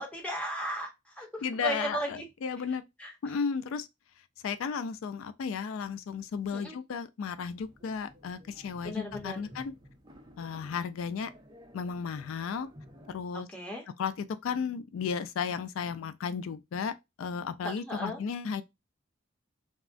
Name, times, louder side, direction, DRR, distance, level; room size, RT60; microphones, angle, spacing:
voice 1, 0.0-2.3 3.0-3.4 6.5-6.8 8.8-9.5 13.3-13.8 17.6-18.2, right 1 dB, 5° left, 0.8 m, -36 dB
voice 2, 1.4-2.8 3.2-3.9 4.4-9.7 10.4-11.3 11.7-12.7 13.1-13.5 14.0-18.6, left 6 dB, 85° left, 0.3 m, -34 dB
sound 1, 7.6-13.2, equal, 25° right, 0.5 m, -53 dB
3.5 x 2.1 x 2.4 m
head